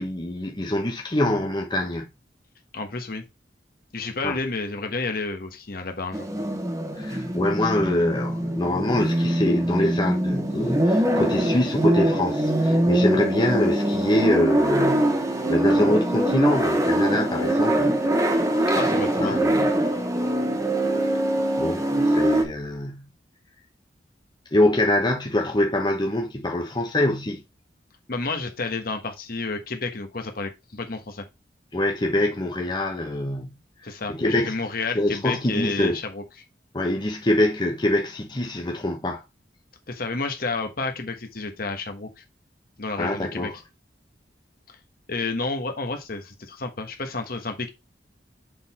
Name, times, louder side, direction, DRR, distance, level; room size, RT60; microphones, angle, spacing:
voice 1, 0.0-2.1 4.2-4.4 6.9-18.0 19.2-19.8 21.6-23.1 24.5-27.4 31.7-33.6 34.1-34.6 34.9-36.0 36.7-39.2 43.0-43.5, left 1 dB, 25° left, 1.1 m, -24 dB
voice 2, 2.7-3.2 3.9-6.3 18.7-19.4 28.1-31.2 33.8-36.2 39.9-42.2 42.8-43.5 44.7-44.8 45.1-47.7, left 3 dB, 60° left, 1.3 m, -30 dB
sound 1, 6.1-22.4, right 1 dB, 20° right, 1.1 m, -23 dB
6.8 x 4.0 x 4.1 m
head